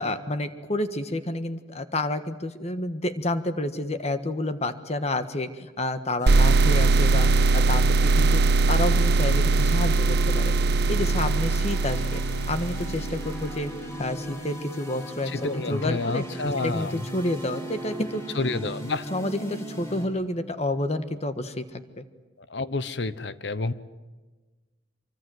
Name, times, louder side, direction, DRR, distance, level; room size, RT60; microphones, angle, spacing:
voice 1, 0.0-8.4 8.7-10.5 10.9-12.2 12.5-13.7 14.0-16.2 16.6-18.3 19.1-22.0, left 1 dB, 35° left, 9 dB, 1.4 m, -29 dB
sound 1, 6.2-20.1, right 1 dB, 15° left, 4.3 m, -38 dB
sound 2, 6.3-13.8, right 3 dB, 60° right, 0.7 m, -21 dB
voice 2, 15.3-17.0 18.4-19.1 22.5-23.7, left 3 dB, 65° left, 14 dB, 1.0 m, -29 dB
25.5 x 24.0 x 7.8 m, 1.3 s
head